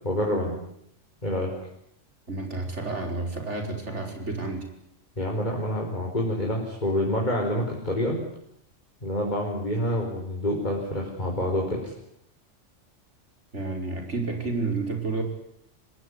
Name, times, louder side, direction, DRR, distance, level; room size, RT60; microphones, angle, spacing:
voice 1, 0.0-0.6 1.2-1.5 5.2-8.2 9.0-11.9, left 1 dB, 35° left, -1 dB, 4.9 m, -27 dB
voice 2, 2.3-4.7 13.5-15.2, right 3 dB, 70° right, 3 dB, 5.6 m, -30 dB
26.5 x 20.0 x 9.9 m, 0.73 s
omnidirectional pair, 1.2 m